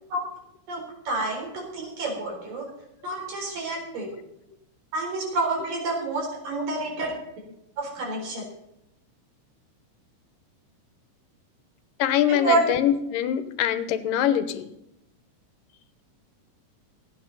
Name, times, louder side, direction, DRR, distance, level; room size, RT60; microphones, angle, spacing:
voice 1, 0.7-2.7 3.0-4.1 4.9-7.1 7.8-8.4 12.3-12.6, right 2 dB, 90° right, -1 dB, 5.7 m, -28 dB
voice 2, 12.0-14.7, left 10 dB, 80° left, 11 dB, 2.6 m, -24 dB
15.0 x 9.2 x 5.5 m, 0.84 s
omnidirectional pair, 3.8 m